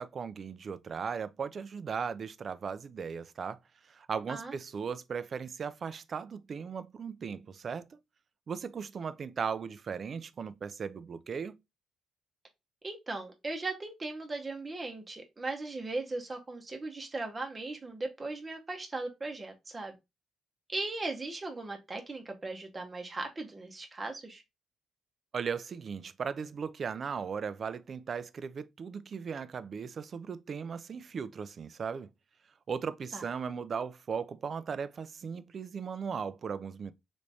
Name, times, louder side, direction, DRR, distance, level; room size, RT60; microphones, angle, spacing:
voice 1, 0.0-3.6 3.9-8.0 8.5-11.5 25.3-32.1 32.7-36.9, right 6 dB, 45° right, 0.3 m, -37 dB
voice 2, 12.8-19.9 20.7-24.4 33.1-33.2, right 2 dB, 25° right, 0.7 m, -38 dB
3.4 x 3.0 x 2.6 m
cardioid pair, 90°, 0 cm